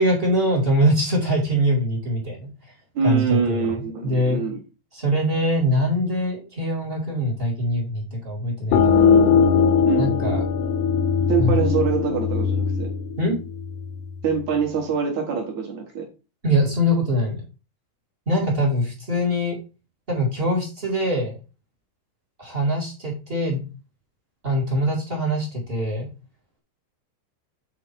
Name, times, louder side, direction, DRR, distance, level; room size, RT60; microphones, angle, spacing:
voice 1, 0.0-2.5 3.0-4.4 4.9-9.1 10.0-10.4 11.4-11.6 13.2-13.4 16.4-17.4 18.2-19.6 20.1-21.3 22.4-23.6 24.4-26.1, equal, 35° right, -3 dB, 0.8 m, -23 dB
voice 2, 3.0-4.6 9.9-10.1 11.3-12.9 14.2-16.1, right 5 dB, 60° right, 1 dB, 2.1 m, -24 dB
sound 1, 8.7-14.1, left 6 dB, 80° left, 2.6 m, -20 dB
8.6 x 3.8 x 4.5 m, 0.32 s
omnidirectional pair, 4.8 m